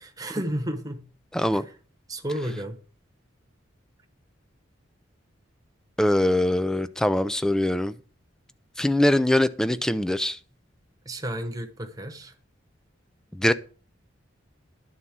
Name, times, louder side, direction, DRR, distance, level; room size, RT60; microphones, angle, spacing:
voice 1, 0.0-1.0 1.5-1.6 2.1-2.8 11.1-12.3, right 1 dB, 20° right, 1.0 m, -32 dB
voice 2, 1.3-1.7 6.0-7.9 8.8-10.4 13.3-13.5, left 1 dB, 5° left, 0.4 m, -22 dB
11.0 x 4.1 x 7.4 m
head